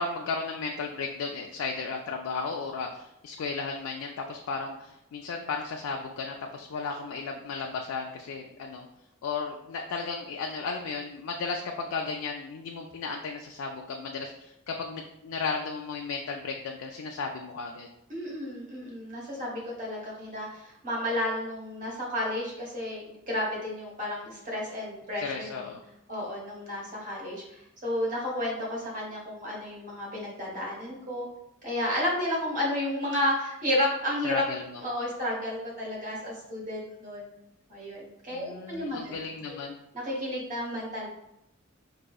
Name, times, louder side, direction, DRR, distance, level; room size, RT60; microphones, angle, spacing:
voice 1, 0.0-8.9 9.2-17.9 25.2-25.8 34.2-34.8 38.3-39.7, left 4 dB, 85° left, 2 dB, 0.4 m, -34 dB
voice 2, 18.1-25.7 26.1-31.3 31.6-34.4 34.8-37.3 37.7-39.2 39.5-39.6 39.9-41.1, left 1 dB, 40° right, -3 dB, 1.1 m, -32 dB
4.9 x 2.7 x 2.3 m, 0.83 s
head